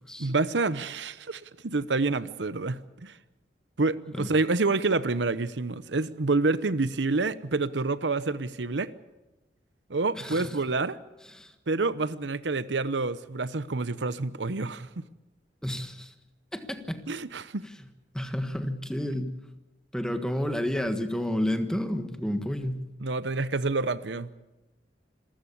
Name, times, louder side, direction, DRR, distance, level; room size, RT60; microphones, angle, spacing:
voice 1, 0.2-3.2 3.8-8.9 9.9-11.0 11.7-15.0 17.1-17.6 23.0-24.3, right 3 dB, 90° right, 16 dB, 0.9 m, -28 dB
voice 2, 10.1-10.5 11.3-11.5 15.6-16.1 16.5-17.0 18.1-19.4 19.9-22.8, left 1 dB, 5° left, 8 dB, 1.5 m, -30 dB
26.5 x 15.0 x 8.6 m, 1.0 s
head